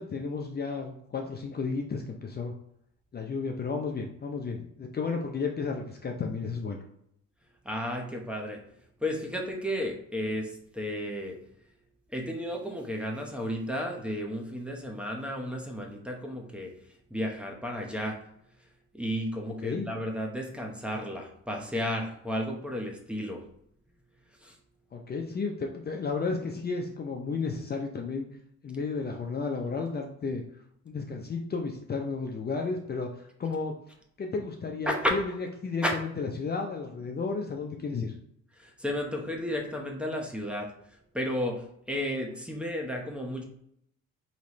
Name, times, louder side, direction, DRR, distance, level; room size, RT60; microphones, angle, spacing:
voice 1, 0.0-2.5 3.1-6.8 19.6-19.9 24.9-28.2 28.6-30.4 30.9-33.7 34.2-38.1, left 4 dB, 35° left, 2 dB, 0.6 m, -33 dB
voice 2, 7.6-8.6 9.0-11.4 12.1-16.7 17.1-18.2 18.9-23.4 24.4-24.6 34.9-35.1 35.8-36.0 38.6-40.7 41.1-43.4, equal, 5° right, 0 dB, 0.9 m, -33 dB
4.2 x 3.1 x 3.0 m, 0.73 s
cardioid pair, 90°, 30 cm